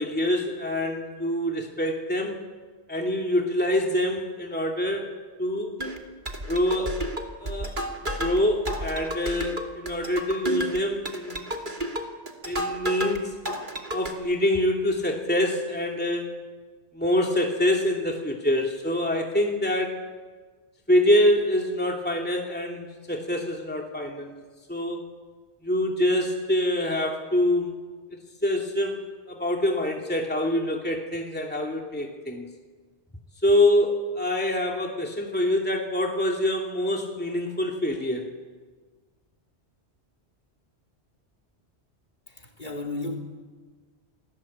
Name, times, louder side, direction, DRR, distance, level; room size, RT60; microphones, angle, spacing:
voice 1, 0.0-2.4 2.9-5.1 5.4-5.7 6.5-7.0 7.4-7.8 8.2-11.5 12.4-13.3 13.9-16.3 16.9-20.0 20.9-24.4 24.7-25.0 25.6-27.7 28.4-32.5 33.4-38.3, left 1 dB, 10° left, 0 dB, 2.7 m, -25 dB
sound 1, 5.8-13.2 13.4-14.1, right 1 dB, 45° right, 2.9 m, -32 dB
voice 2, 42.3-43.2, left 2 dB, 40° left, 4 dB, 3.8 m, -33 dB
29.5 x 21.0 x 8.7 m, 1.4 s
omnidirectional pair, 1.2 m